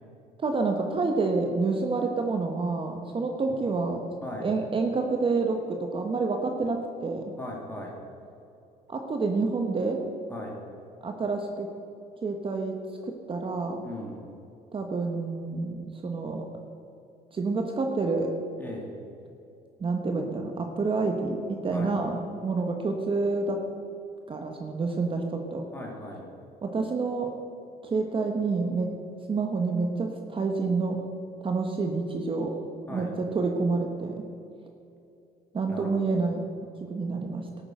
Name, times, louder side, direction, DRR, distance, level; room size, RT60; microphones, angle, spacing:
voice 1, 0.4-4.0 4.4-7.3 8.9-10.0 11.0-11.7 12.2-12.7 13.0-13.8 14.7-16.4 17.3-18.3 19.8-23.6 24.3-25.7 26.6-27.3 27.8-28.9 29.3-31.0 31.4-32.5 32.9-34.2 35.5-36.4 36.8-37.5, right 3 dB, 30° right, 4 dB, 1.2 m, -28 dB
voice 2, 4.2-4.5 7.4-7.9 10.3-10.6 13.8-14.2 18.6-18.9 21.7-22.0 25.7-26.2 32.9-33.1 35.7-36.2, left 1 dB, 10° left, -2 dB, 2.6 m, -38 dB
13.5 x 8.7 x 6.5 m, 2.6 s
cardioid pair, 110°, 17 cm